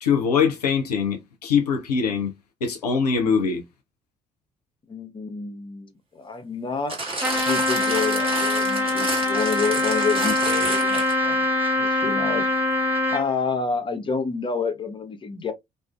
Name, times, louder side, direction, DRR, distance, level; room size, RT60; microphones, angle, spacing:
voice 1, 0.0-2.3 2.6-3.6, left 6 dB, 85° left, 0.5 m, -22 dB
voice 2, 4.9-11.5 11.8-12.5 13.1-15.5, left 4 dB, 25° left, 0.7 m, -29 dB
sound 1, 6.9-11.3 12.1-12.2, right 2 dB, 30° right, 1.3 m, -30 dB
Trumpet, 7.2-13.3, left 2 dB, 10° right, 0.8 m, -23 dB
2.5 x 2.4 x 2.3 m
figure-of-eight pair, 50°, 20 cm